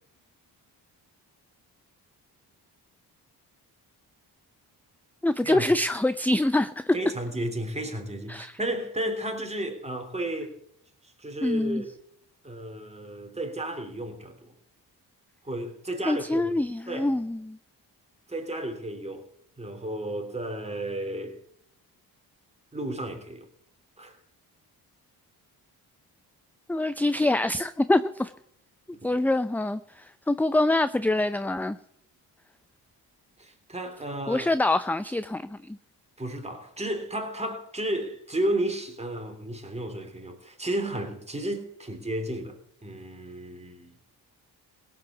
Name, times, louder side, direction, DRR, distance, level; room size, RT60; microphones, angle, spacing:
voice 1, 5.2-6.9 8.3-8.6 11.4-11.8 16.1-17.6 26.7-28.3 29.0-31.8 34.3-35.8, left 2 dB, 5° left, 0.5 m, -25 dB
voice 2, 6.9-10.5 11.0-11.9 12.4-14.5 15.4-16.5 16.9-17.1 18.3-19.3 19.6-21.4 22.7-23.4 24.0-24.2 33.4-34.5 36.2-43.9, right 1 dB, 15° right, 3.4 m, -33 dB
17.0 x 7.9 x 7.1 m
cardioid pair, 75°, 40 cm